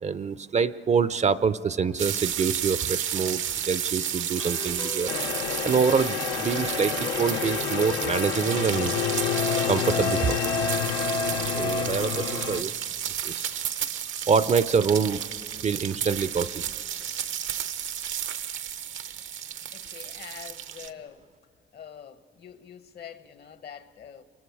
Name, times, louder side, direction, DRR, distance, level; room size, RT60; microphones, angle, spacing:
voice 1, 0.0-5.1 5.6-9.0 9.7-10.4 11.5-12.7 13.2-13.6 14.3-15.2 15.6-16.6, right 6 dB, 35° right, 0.5 m, -26 dB
sound 1, 2.0-20.9, right 9 dB, 75° right, 0.8 m, -32 dB
sound 2, 4.4-12.5, left 2 dB, 25° left, 0.6 m, -35 dB
sound 3, 5.1-12.6, left 10 dB, 85° left, 0.6 m, -30 dB
voice 2, 19.7-21.3 21.7-24.2, left 8 dB, 55° left, 1.0 m, -45 dB
28.0 x 23.5 x 4.7 m
cardioid pair, 90°, 20 cm